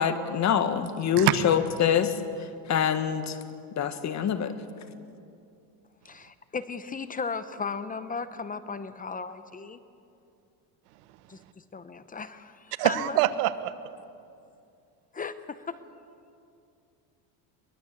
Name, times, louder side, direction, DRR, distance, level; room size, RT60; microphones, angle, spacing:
voice 1, 0.0-2.2 2.7-3.4 3.8-4.5, left 8 dB, 35° left, 10 dB, 1.6 m, -25 dB
voice 2, 6.0-9.8 11.3-11.4 11.7-13.2 15.1-15.8, left 5 dB, 20° left, 12 dB, 0.8 m, -36 dB
voice 3, 12.8-13.7, right 15 dB, 85° right, 13 dB, 1.3 m, -24 dB
22.5 x 21.5 x 8.4 m, 2.5 s
supercardioid pair, 130°, 46 cm